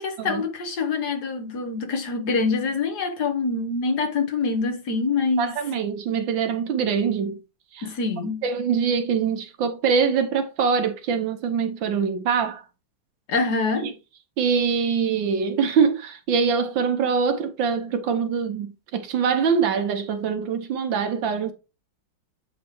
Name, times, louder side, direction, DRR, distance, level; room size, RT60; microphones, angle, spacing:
voice 1, 0.0-5.5 7.8-8.5 13.3-13.9, left 4 dB, 60° left, 1.6 m, -25 dB
voice 2, 5.4-7.4 7.7-7.9 8.4-12.6 13.8-13.9 14.4-18.7 18.9-21.5, right 6 dB, 70° right, 1.6 m, -23 dB
8.3 x 3.2 x 4.5 m
omnidirectional pair, 2.2 m